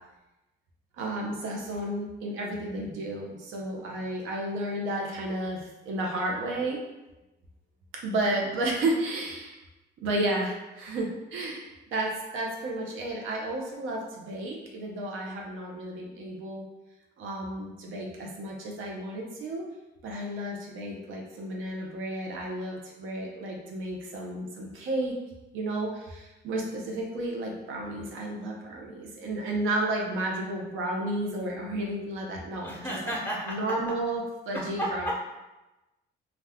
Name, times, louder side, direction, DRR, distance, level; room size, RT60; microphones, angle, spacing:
voice 1, 1.0-6.8 8.0-9.6 10.0-16.6 17.2-19.7 20.0-25.2 25.5-33.2 33.5-35.1, right 1 dB, 85° right, -1 dB, 0.6 m, -32 dB
voice 2, 32.6-33.5 34.5-35.1, equal, 10° left, -3 dB, 0.9 m, -32 dB
2.3 x 2.2 x 3.4 m, 1.0 s
cardioid pair, 90°, 20 cm